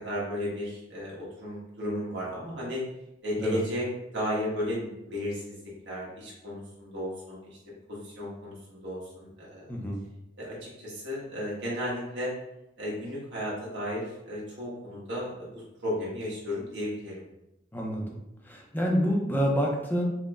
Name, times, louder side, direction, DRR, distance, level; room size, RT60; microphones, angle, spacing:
voice 1, 0.0-2.8 3.2-3.9 4.1-5.6 5.8-7.6 7.9-9.8 10.4-12.3 12.8-17.2, equal, 75° right, -6 dB, 1.2 m, -34 dB
voice 2, 17.7-18.0 18.4-20.0, equal, 10° left, -1 dB, 0.4 m, -27 dB
5.1 x 2.1 x 2.3 m, 0.89 s
head